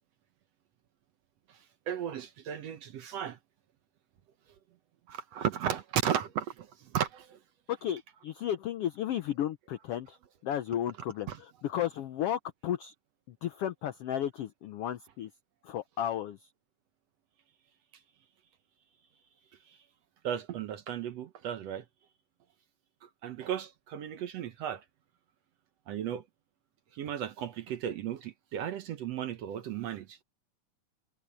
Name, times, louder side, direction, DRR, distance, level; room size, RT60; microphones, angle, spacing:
voice 1, 1.9-3.4 5.1-7.4 11.3-11.4 19.7-19.8 20.2-21.9 23.0-24.8 25.9-26.2 26.9-30.2, right 9 dB, 65° right, 1.8 m, -35 dB
voice 2, 7.7-10.2 10.4-12.9 13.3-15.3 15.6-16.5, left 10 dB, 85° left, 1.3 m, -34 dB
omnidirectional pair, 3.7 m